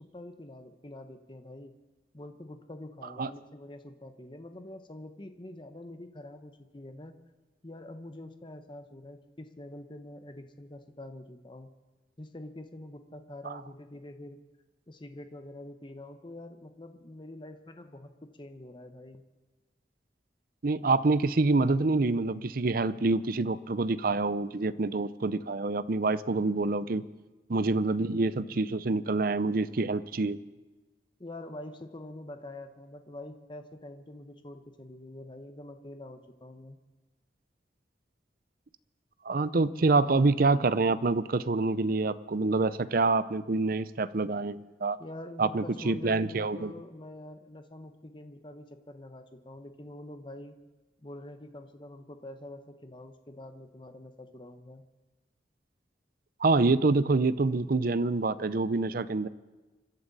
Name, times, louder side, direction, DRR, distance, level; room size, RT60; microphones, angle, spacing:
voice 1, 0.0-1.7 2.1-7.1 7.6-11.7 12.2-14.4 14.9-19.2 31.2-36.8 45.0-50.5 51.0-54.8, left 1 dB, 25° left, 7 dB, 0.9 m, -45 dB
voice 2, 20.6-27.0 27.5-30.4 39.2-45.0 45.4-46.7 56.4-59.3, right 3 dB, 50° right, 15 dB, 0.6 m, -26 dB
26.0 x 12.0 x 4.1 m, 1.2 s
head